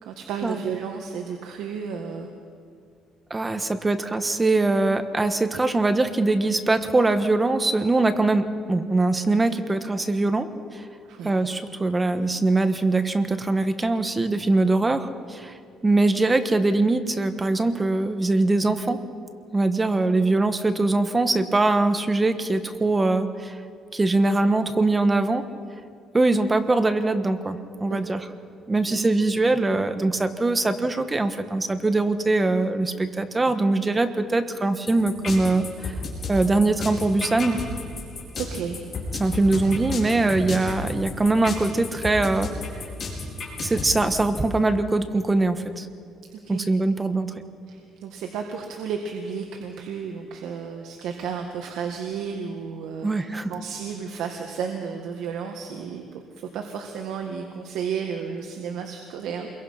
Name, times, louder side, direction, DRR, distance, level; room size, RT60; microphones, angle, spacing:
voice 1, 0.0-2.3 11.1-11.4 27.9-28.2 28.9-29.0 38.4-38.8 46.3-46.7 47.7-59.5, right 6 dB, 75° right, 3 dB, 1.9 m, -33 dB
voice 2, 3.3-10.5 10.7-10.8 11.2-15.5 15.8-19.0 19.5-23.6 23.9-25.4 26.1-28.2 28.7-35.9 36.3-37.6 39.2-42.5 43.6-45.9 46.5-47.3 53.0-53.5, right 2 dB, 15° right, 9 dB, 1.3 m, -22 dB
sound 1, 34.9-44.4, left 4 dB, 35° left, 5.3 m, -32 dB
28.0 x 22.5 x 5.8 m, 2.3 s
cardioid pair, 145°, 0 cm